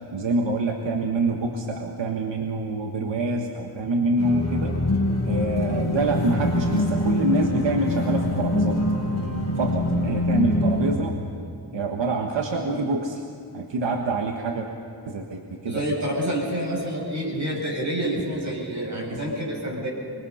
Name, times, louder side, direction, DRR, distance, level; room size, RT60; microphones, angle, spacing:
voice 1, 0.1-4.8 5.2-8.8 9.6-11.2 11.7-13.2 13.5-14.7 15.0-15.8 18.9-19.2, right 2 dB, 85° right, 2 dB, 1.4 m, -26 dB
sound 1, 4.2-11.0, left 1 dB, 35° left, 4.3 m, -24 dB
voice 2, 15.6-19.9, right 1 dB, 40° right, -2 dB, 7.9 m, -28 dB
25.5 x 22.0 x 5.7 m, 2.4 s
wide cardioid pair, 75°, 43 cm